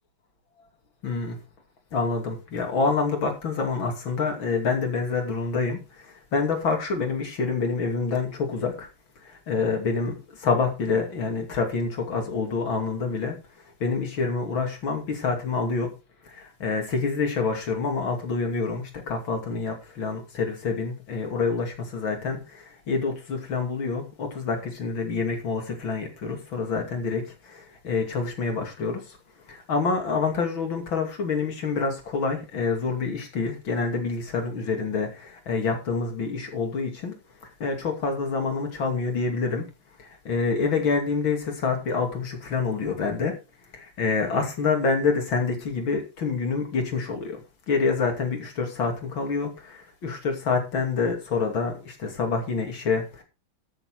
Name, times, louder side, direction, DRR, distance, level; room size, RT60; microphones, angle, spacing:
voice 1, 1.0-1.4 1.9-8.9 9.2-13.4 13.8-15.9 16.2-29.2 29.5-37.2 37.4-39.7 40.0-43.4 43.7-47.4 47.7-53.2, left 4 dB, 80° left, 3.5 m, -27 dB
13.0 x 7.0 x 5.0 m
omnidirectional pair, 2.1 m